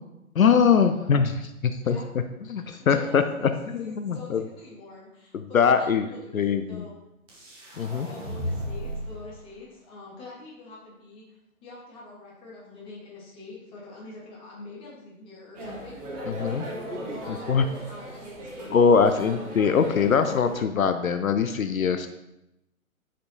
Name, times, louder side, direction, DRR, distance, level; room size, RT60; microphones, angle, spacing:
voice 1, 0.4-2.0 2.5-4.4 5.3-6.0 6.3-6.8 7.8-8.1 16.3-16.6 17.5-17.6 18.7-22.1, left 6 dB, 70° left, 9 dB, 0.6 m, -22 dB
voice 2, 2.5-6.9 8.0-19.4 21.0-21.1, left 3 dB, 10° left, -4 dB, 1.4 m, -45 dB
sound 1, 7.3-9.2, equal, 10° right, 1.1 m, -34 dB
sound 2, 15.5-20.6, equal, 25° right, 1.6 m, -37 dB
10.0 x 5.2 x 2.7 m, 0.88 s
figure-of-eight pair, 135°, 43 cm